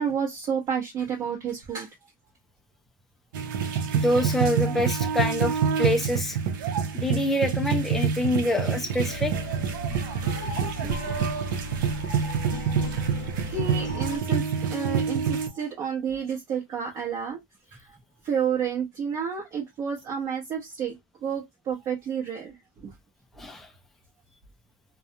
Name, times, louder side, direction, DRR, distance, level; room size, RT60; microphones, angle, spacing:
voice 1, 0.0-1.9 4.6-4.8 10.4-11.3 13.4-17.4 17.7-17.8 18.2-20.9 21.2-22.9, right 7 dB, 35° right, 0.8 m, -30 dB
sound 1, 3.3-15.5, right 7 dB, 80° right, 0.6 m, -27 dB
voice 2, 3.9-6.4 6.9-9.3 23.4-23.7, left 1 dB, ahead, 0.3 m, -26 dB
sound 2, 9.1-14.2, left 2 dB, 85° left, 0.7 m, -37 dB
2.4 x 2.1 x 2.7 m
supercardioid pair, 155°, 11 cm